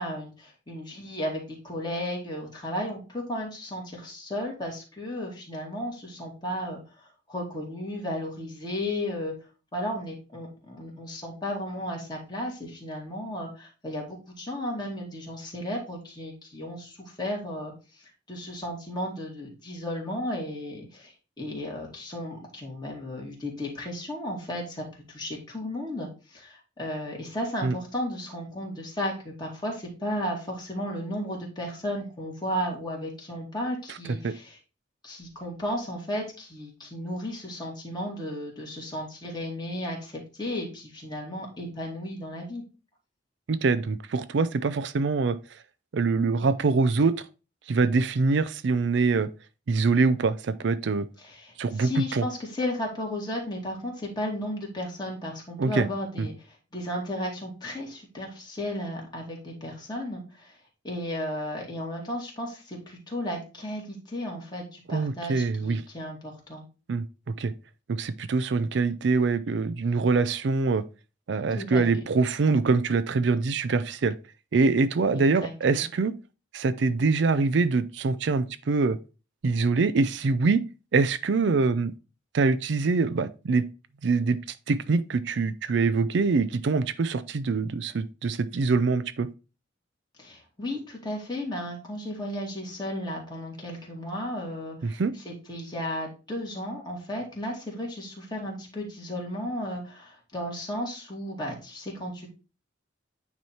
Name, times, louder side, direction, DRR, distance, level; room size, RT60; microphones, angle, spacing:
voice 1, 0.0-9.3 9.7-34.6 35.0-42.6 51.2-60.6 60.8-66.6 71.5-71.8 75.1-75.8 90.2-102.3, left 1 dB, 25° left, 2.4 m, -34 dB
voice 2, 43.5-45.4 45.9-47.1 47.7-49.3 49.7-51.1 51.6-52.2 55.6-55.9 56.2-56.3 64.9-65.8 66.9-67.0 67.4-67.5 67.9-70.8 71.3-74.1 74.5-76.1 76.5-79.0 79.4-80.6 80.9-81.9 82.3-83.6 84.0-84.4 84.7-89.3 94.8-95.1, right 4 dB, 65° right, 0.4 m, -24 dB
9.3 x 3.1 x 4.2 m
head